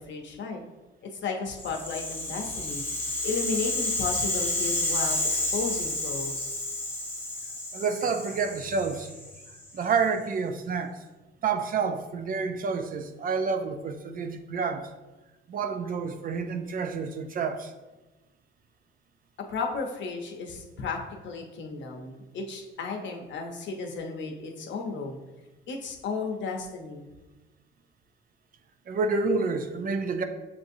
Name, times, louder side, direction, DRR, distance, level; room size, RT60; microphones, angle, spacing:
voice 1, 0.1-0.6 1.0-2.8 3.2-6.6 19.4-25.2 25.7-27.0, left 4 dB, 65° left, 2 dB, 0.7 m, -34 dB
Rattle (instrument), 1.5-9.7, left 1 dB, 10° left, 0.8 m, -31 dB
voice 2, 7.7-9.1 9.7-11.0 11.4-14.8 15.5-17.7 28.9-30.2, right 5 dB, 45° right, 7 dB, 0.4 m, -29 dB
7.1 x 2.6 x 2.6 m, 1.1 s
cardioid pair, 90°, 20 cm